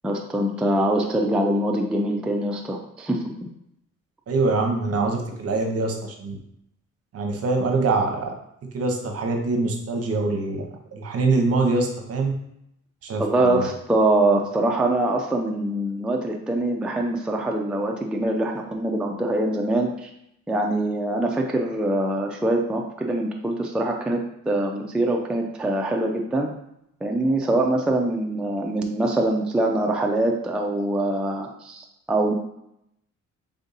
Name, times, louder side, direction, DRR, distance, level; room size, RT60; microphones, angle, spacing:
voice 1, 0.0-3.5 13.2-20.1 20.5-26.5 27.0-32.3, right 1 dB, 5° right, 1 dB, 0.3 m, -24 dB
voice 2, 4.3-6.4 7.1-8.3 8.7-10.7 10.9-12.3 13.0-13.7, right 3 dB, 50° right, 3 dB, 0.8 m, -24 dB
3.5 x 2.6 x 3.9 m, 0.77 s
cardioid pair, 90°, 30 cm